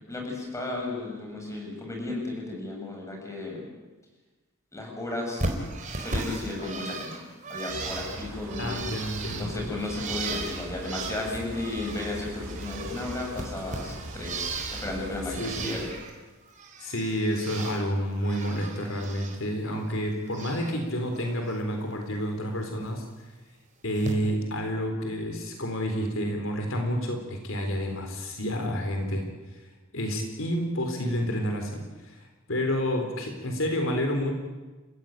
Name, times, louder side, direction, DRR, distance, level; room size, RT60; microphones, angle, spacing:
voice 1, 0.1-3.6 4.7-5.4 6.0-7.2 7.5-8.8 9.3-15.9, left 2 dB, 15° left, 0 dB, 7.1 m, -34 dB
Bird, 5.4-12.2 12.4-15.0 15.3-16.1 16.5-17.8 18.1-19.4 19.7-20.7 21.1-21.5 22.8-22.9 23.9-24.1, right 3 dB, 40° right, 4.1 m, -36 dB
sound 1, 7.7-15.9, right 1 dB, 85° right, 4.8 m, -41 dB
voice 2, 8.6-9.7 15.4-15.8 16.8-23.1 23.8-29.3 29.9-34.3, equal, 70° left, 3 dB, 4.0 m, -29 dB
30.0 x 16.0 x 9.3 m, 1.2 s
head